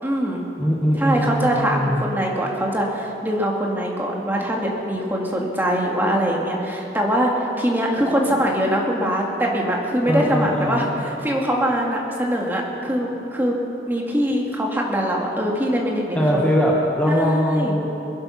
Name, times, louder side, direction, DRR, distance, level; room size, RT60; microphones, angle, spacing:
voice 1, 0.0-0.4 1.0-13.6 13.9-16.5 17.1-17.8, equal, 10° right, -1 dB, 2.0 m, -23 dB
voice 2, 0.6-2.1 10.1-10.8 16.1-17.9, equal, 10° left, -4 dB, 1.3 m, -21 dB
21.5 x 11.5 x 5.8 m, 2.9 s
head